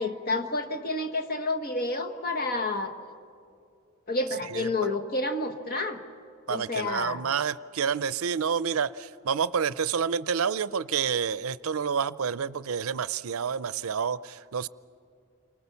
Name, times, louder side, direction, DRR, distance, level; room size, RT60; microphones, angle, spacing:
voice 1, 0.0-2.9 4.1-6.0 6.5-7.2, left 2 dB, 45° left, 7 dB, 1.5 m, -29 dB
voice 2, 4.5-4.9 6.5-14.7, right 6 dB, 70° right, 17 dB, 0.5 m, -29 dB
29.5 x 24.5 x 7.0 m, 2.5 s
head